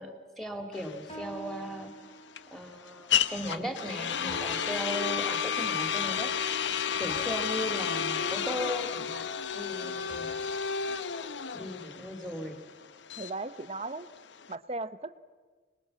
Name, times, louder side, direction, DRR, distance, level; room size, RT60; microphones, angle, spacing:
voice 1, 0.0-1.9 2.5-6.6 7.0-9.3 9.5-10.3 11.5-12.6, equal, ahead, 6 dB, 2.2 m, -37 dB
sound 1, 0.7-14.5, left 7 dB, 80° left, 0.8 m, -32 dB
sound 2, 1.1-2.6 4.3-5.9 7.1-9.0 10.1-12.4, equal, 35° left, 2.9 m, -48 dB
voice 2, 13.2-14.1 14.5-15.2, right 2 dB, 35° right, 13 dB, 0.8 m, -37 dB
27.0 x 21.0 x 7.6 m, 1.5 s
head